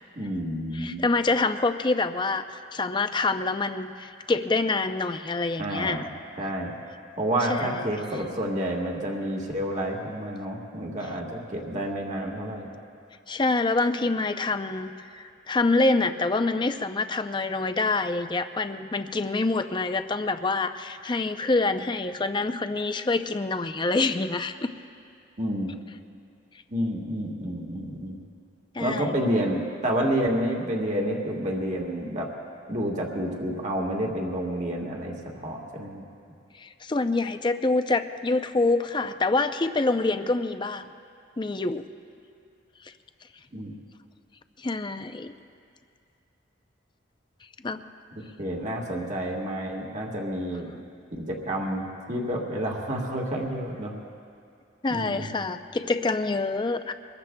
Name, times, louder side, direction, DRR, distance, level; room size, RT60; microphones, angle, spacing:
voice 1, 0.1-1.1 5.6-6.1 6.4-6.7 7.2-12.7 25.4-25.7 26.7-28.2 28.8-32.3 32.7-35.1 35.4-36.0 43.5-43.7 48.2-50.7 51.3-53.9 54.9-55.3, right 1 dB, 40° right, 0 dB, 1.6 m, -29 dB
voice 2, 0.7-6.1 7.5-7.8 13.3-14.9 15.2-24.5 28.7-29.1 36.6-40.9 41.4-41.8 44.6-45.3 47.6-47.8 54.8-56.9, left 3 dB, 25° left, 8 dB, 0.5 m, -26 dB
24.0 x 21.0 x 2.3 m, 2.4 s
head